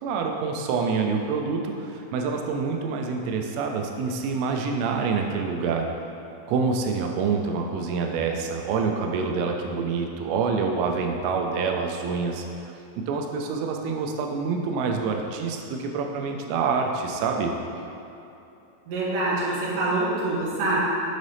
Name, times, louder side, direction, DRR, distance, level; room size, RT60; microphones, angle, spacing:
voice 1, 0.0-5.9 6.5-12.4 13.1-17.5, right 5 dB, 90° right, 2 dB, 2.8 m, -26 dB
voice 2, 18.9-20.8, right 2 dB, 70° right, -6 dB, 2.1 m, -25 dB
7.2 x 3.9 x 3.3 m, 2.8 s
omnidirectional pair, 4.9 m